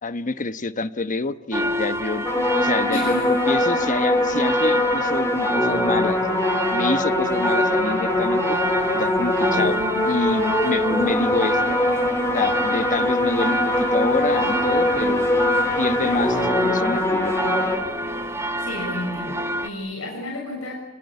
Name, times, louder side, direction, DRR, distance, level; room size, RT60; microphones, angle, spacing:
voice 1, 0.0-2.3 2.5-6.2 6.7-8.6 8.9-9.8 10.0-11.8 12.3-15.4 15.8-17.3, left 3 dB, 40° left, 12 dB, 1.1 m, -27 dB
sound 1, 1.5-19.7, right 1 dB, 15° right, 1.8 m, -28 dB
sound 2, 2.3-17.8, left 1 dB, 15° left, 3.5 m, -22 dB
voice 2, 2.9-3.2 18.6-20.7, left 1 dB, 80° left, 1 dB, 6.6 m, -31 dB
sound 3, 8.5-16.5, left 2 dB, 60° left, 5.4 m, -43 dB
28.5 x 20.0 x 9.8 m, 1.0 s
head